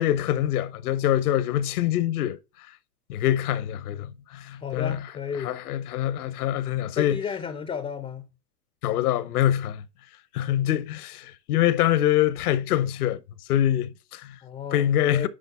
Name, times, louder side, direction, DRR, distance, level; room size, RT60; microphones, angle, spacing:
voice 1, 0.0-2.4 3.1-5.0 5.4-7.2 8.8-9.8 10.3-13.2 13.5-14.4 14.7-15.3, left 12 dB, 60° left, 1.0 m, -24 dB
voice 2, 4.6-5.5 7.0-8.3 14.4-15.3, left 7 dB, 10° left, 0.5 m, -33 dB
10.0 x 4.0 x 3.4 m
hypercardioid pair, 105°, 50 cm